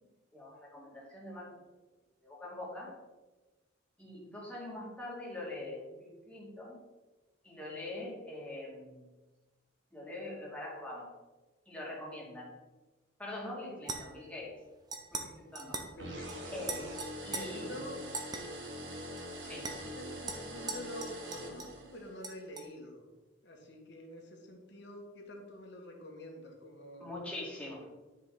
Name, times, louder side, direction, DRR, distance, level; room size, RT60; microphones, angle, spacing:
voice 1, 0.3-1.5 2.2-2.9 4.0-6.8 7.4-9.0 9.9-11.1 11.7-12.5 13.2-14.5 15.1-15.8 16.5-16.8 17.2-17.7 19.4-19.7 27.0-27.8, left 1 dB, 5° left, -5 dB, 2.2 m, -43 dB
sound 1, 13.8-14.3 14.9-15.3 15.6-15.9 16.3-16.4 16.7-17.4 18.1-18.4 19.2-19.3 19.6-19.8 20.3-21.8 22.2-22.7, right 4 dB, 20° right, 0.8 m, -40 dB
voice 2, 15.9-16.5 17.3-18.0 20.0-23.1 23.4-27.9, equal, 60° left, 0 dB, 1.7 m, -47 dB
sound 2, 16.0-22.2, equal, 70° right, 1.5 m, -44 dB
9.8 x 5.3 x 3.9 m, 1.2 s
head